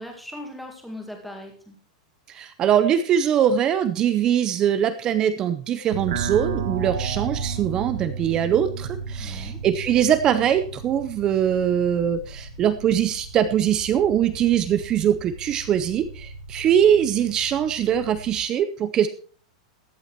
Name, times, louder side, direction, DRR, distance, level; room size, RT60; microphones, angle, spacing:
voice 1, 0.0-1.8 9.2-9.6, left 1 dB, ahead, 2 dB, 1.9 m, -39 dB
voice 2, 2.3-19.1, right 9 dB, 20° right, 11 dB, 0.6 m, -22 dB
sound 1, 5.9-18.4, right 5 dB, 80° right, 2.4 m, -34 dB
14.0 x 8.7 x 4.5 m, 0.42 s
supercardioid pair, 175°, 4 cm